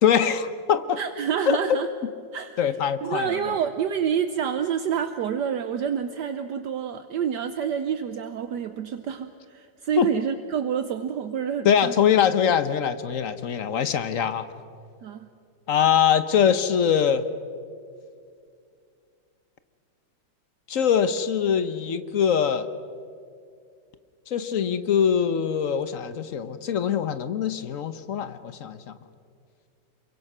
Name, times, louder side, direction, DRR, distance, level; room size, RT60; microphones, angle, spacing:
voice 1, 0.0-1.0 1.5-1.6 2.6-3.5 10.0-10.1 11.6-14.4 15.7-17.3 20.7-22.7 24.3-28.9, left 8 dB, 50° left, 12 dB, 1.1 m, -23 dB
voice 2, 1.0-1.9 2.3-2.6 3.0-12.0 15.0-15.3, right 8 dB, 70° right, 9 dB, 1.3 m, -28 dB
27.5 x 23.5 x 6.1 m, 2.3 s
omnidirectional pair, 2.0 m